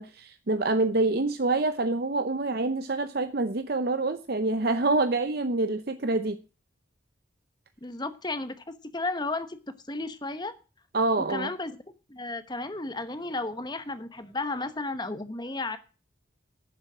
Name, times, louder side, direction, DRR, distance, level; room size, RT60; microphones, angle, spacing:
voice 1, 0.0-6.4 10.9-11.5, right 2 dB, 50° right, 0.7 m, -26 dB
voice 2, 7.8-9.6 9.9-10.5 11.2-11.8 12.1-15.8, left 2 dB, 20° left, 1.0 m, -33 dB
11.0 x 7.4 x 7.3 m
head